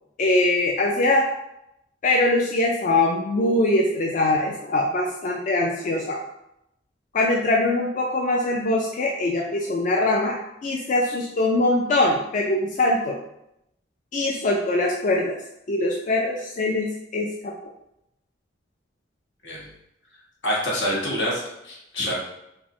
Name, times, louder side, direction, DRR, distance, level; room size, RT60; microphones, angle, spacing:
voice 1, 0.2-1.3 2.0-6.2 7.1-10.4 10.6-13.2 14.1-15.4 15.7-17.5, left 2 dB, 45° left, -1 dB, 0.4 m, -22 dB
voice 2, 20.4-22.1, equal, 80° left, -4 dB, 1.3 m, -26 dB
5.3 x 2.0 x 3.0 m, 0.83 s
head